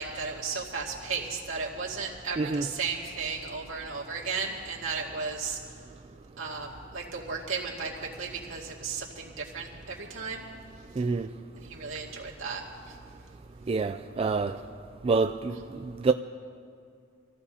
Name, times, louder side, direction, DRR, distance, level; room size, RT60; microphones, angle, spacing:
voice 1, 0.0-5.6 6.4-10.5 11.6-13.0, right 5 dB, 75° right, 2.2 m, -35 dB
voice 2, 2.4-2.7 11.0-11.3 13.7-14.6 15.0-16.1, right 4 dB, 30° right, 0.3 m, -27 dB
26.0 x 15.0 x 2.8 m
head